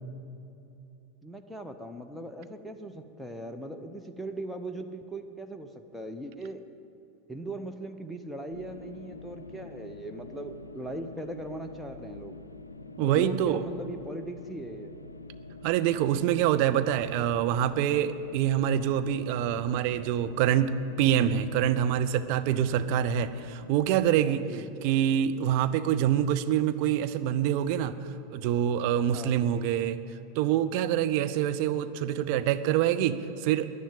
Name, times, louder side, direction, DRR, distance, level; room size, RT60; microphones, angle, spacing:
voice 1, 1.2-6.7 7.3-12.4 13.0-14.9 24.3-24.7 29.1-29.4, right 1 dB, ahead, 4 dB, 0.8 m, -39 dB
sound 1, 8.5-24.3, left 3 dB, 80° left, 0.5 m, -46 dB
voice 2, 13.0-13.6 15.6-24.4 24.8-27.9 28.3-30.0 30.4-33.7, right 10 dB, 45° right, 10 dB, 0.6 m, -26 dB
10.5 x 10.0 x 8.9 m, 2.8 s
figure-of-eight pair, 85°, 0 cm